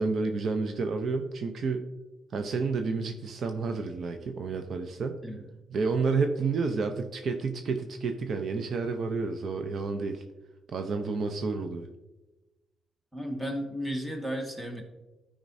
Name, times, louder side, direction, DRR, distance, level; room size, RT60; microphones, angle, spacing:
voice 1, 0.0-1.8 2.3-5.2 5.7-10.2 10.7-11.9, right 4 dB, 60° right, 6 dB, 0.6 m, -30 dB
voice 2, 13.1-14.8, equal, 10° right, 3 dB, 1.5 m, -34 dB
12.0 x 5.1 x 2.7 m, 1.1 s
cardioid pair, 90°, 0 cm